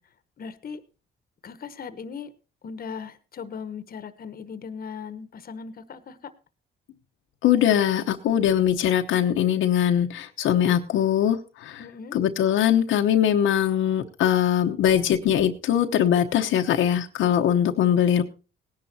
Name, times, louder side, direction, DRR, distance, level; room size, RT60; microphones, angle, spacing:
voice 1, 0.4-0.8 1.4-2.3 2.6-6.3 11.8-12.2, left 6 dB, 50° left, 13 dB, 1.2 m, -38 dB
voice 2, 7.4-11.8 12.1-18.2, left 10 dB, 85° left, 4 dB, 1.0 m, -21 dB
18.0 x 10.5 x 2.8 m, 0.33 s
cardioid pair, 90°, 20 cm